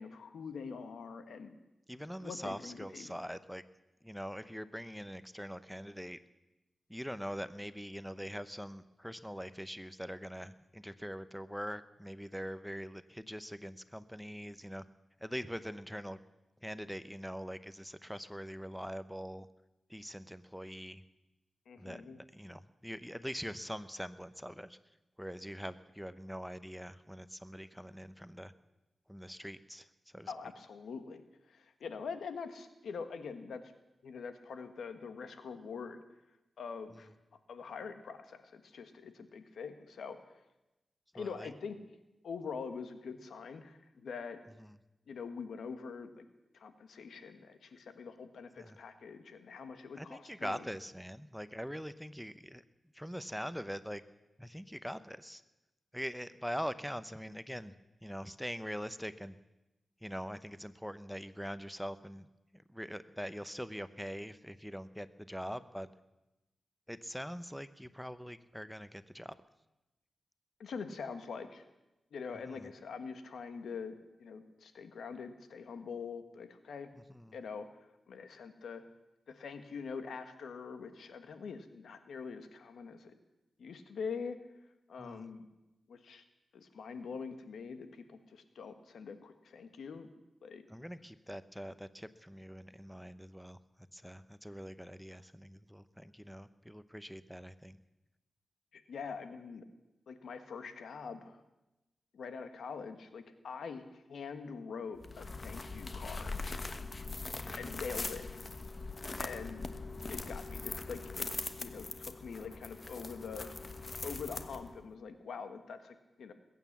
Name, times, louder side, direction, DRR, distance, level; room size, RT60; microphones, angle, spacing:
voice 1, 0.0-1.6 2.2-3.1 21.7-22.2 30.3-33.6 34.0-36.0 36.6-37.1 37.5-40.2 41.1-41.8 42.2-44.4 45.1-46.3 46.5-50.6 70.6-71.6 72.1-76.9 77.3-77.7 78.1-78.8 79.3-83.1 83.6-84.4 84.9-85.5 85.9-86.2 86.5-90.1 90.4-90.6 98.7-99.6 100.1-101.4 102.1-106.4 107.6-108.3 109.2-109.7 110.1-111.3 111.6-113.5 114.0-116.3, left 5 dB, 90° left, 9 dB, 1.4 m, -44 dB
voice 2, 1.9-3.6 4.0-6.2 6.9-14.8 15.2-16.2 16.6-19.5 19.9-21.0 21.8-24.8 25.2-28.5 29.1-29.9 30.1-30.3 41.2-41.5 44.6-44.7 48.6-48.8 50.0-52.6 52.9-54.0 54.4-55.4 55.9-57.7 58.0-59.4 60.0-62.3 62.5-65.9 66.9-69.4 72.4-72.7 76.9-77.4 85.0-85.3 90.7-93.6 93.9-97.8 107.2-107.6, equal, ahead, 13 dB, 0.8 m, -43 dB
sound 1, 105.0-114.9, left 3 dB, 40° left, 1.2 m, -41 dB
21.0 x 9.4 x 7.3 m, 0.97 s
cardioid pair, 65°, 0 cm